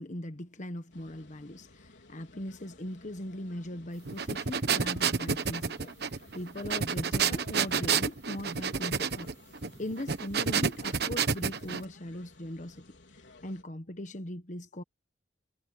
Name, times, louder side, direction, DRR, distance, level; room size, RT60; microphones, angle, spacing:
voice 1, 0.0-9.3 9.7-12.9 13.4-14.8, left 1 dB, 45° left, 1.3 m, -40 dB
sound 1, 0.9-13.6, left 2 dB, 80° left, 4.2 m, -56 dB
sound 2, 4.1-11.8, right 6 dB, 60° right, 1.1 m, -30 dB
head